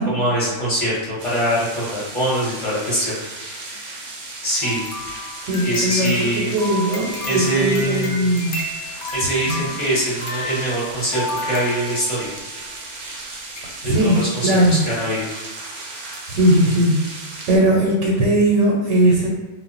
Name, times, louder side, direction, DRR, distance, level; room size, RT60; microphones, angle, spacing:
voice 1, 0.0-4.1 4.4-5.2 5.6-6.5 7.3-8.3 9.1-12.3 13.8-15.3, right 1 dB, 30° left, -8 dB, 0.8 m, -23 dB
sound 1, 1.2-17.6, right 2 dB, 60° right, 0.5 m, -36 dB
sound 2, 4.6-12.4 13.1-13.2 13.6-13.7 14.1-14.2, left 1 dB, 70° left, 0.8 m, -32 dB
voice 2, 5.4-8.6 9.5-9.6 13.8-14.8 16.3-17.0 17.5-19.3, right 1 dB, 85° right, -3 dB, 1.0 m, -18 dB
2.1 x 2.1 x 3.8 m, 1.1 s
omnidirectional pair, 1.3 m